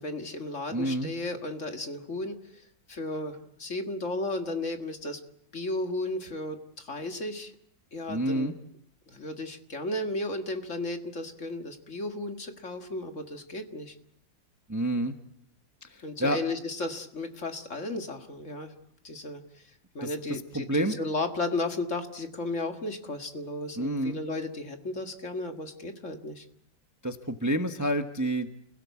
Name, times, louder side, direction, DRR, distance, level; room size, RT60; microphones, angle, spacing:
voice 1, 0.0-2.4 2.9-5.2 5.5-7.5 7.9-8.5 9.1-13.9 16.0-18.7 19.0-19.7 19.9-26.4, left 2 dB, 45° left, 6 dB, 2.2 m, -34 dB
voice 2, 0.7-1.1 8.1-8.5 14.7-15.1 15.8-16.4 20.0-20.1 20.5-21.0 23.8-24.2 27.0-28.5, right 1 dB, 10° right, 7 dB, 1.1 m, -28 dB
29.5 x 17.0 x 8.4 m, 0.73 s
omnidirectional pair, 1.8 m